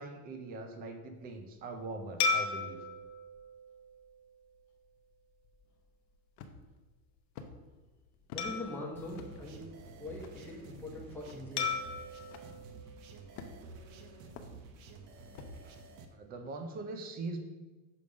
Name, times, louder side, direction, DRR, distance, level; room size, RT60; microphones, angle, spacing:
voice 1, 0.0-2.8 15.6-15.8 16.1-17.4, right 3 dB, 20° right, 6 dB, 0.4 m, -42 dB
sound 1, 2.2-4.9 5.5-5.6 8.4-10.2 11.6-13.9, left 4 dB, 40° left, 0.7 m, -37 dB
sound 2, 6.4-6.8 7.4-7.5 8.3-8.5 9.1-9.3 10.2-10.4 11.3-11.4 12.3-12.5 13.4-13.8 14.4-14.5 15.3-15.6, left 6 dB, 70° left, 0.8 m, -47 dB
voice 2, 8.3-9.6 10.0-11.7, left 2 dB, 5° left, -3 dB, 1.0 m, -42 dB
sound 3, 8.9-16.0, right 3 dB, 70° right, 0.8 m, -51 dB
6.7 x 3.4 x 5.1 m, 1.2 s
cardioid pair, 160°, 45 cm